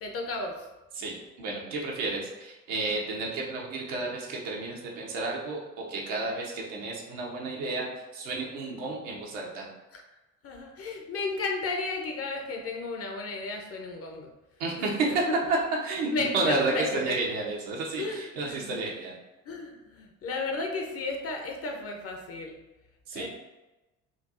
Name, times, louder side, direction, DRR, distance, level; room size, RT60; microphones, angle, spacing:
voice 1, 0.0-0.7 9.9-10.0 10.4-14.3 14.8-15.5 16.0-17.2 18.0-18.8 19.4-22.6 23.1-23.3, left 3 dB, 35° left, 3 dB, 0.7 m, -34 dB
voice 2, 0.9-9.7 14.6-15.2 15.5-15.6 15.8-19.2 23.1-23.3, right 3 dB, 60° right, -2 dB, 1.0 m, -31 dB
4.4 x 2.6 x 2.5 m, 1.0 s
figure-of-eight pair, 55°, 40 cm